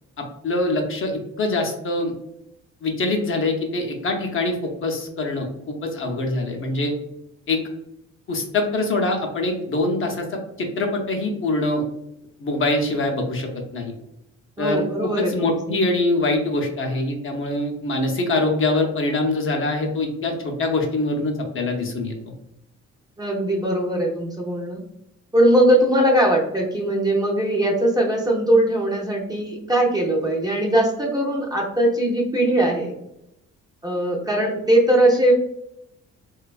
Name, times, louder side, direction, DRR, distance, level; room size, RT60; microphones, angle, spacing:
voice 1, 0.4-2.1 2.8-6.9 7.5-7.6 8.3-11.8 12.4-13.9 14.6-22.2, left 2 dB, 45° left, 2 dB, 0.5 m, -24 dB
voice 2, 14.6-15.8 23.2-24.8 25.3-32.9 33.8-35.3, right 1 dB, 15° right, -2 dB, 0.5 m, -20 dB
2.4 x 2.2 x 2.3 m, 0.82 s
cardioid pair, 90°, 30 cm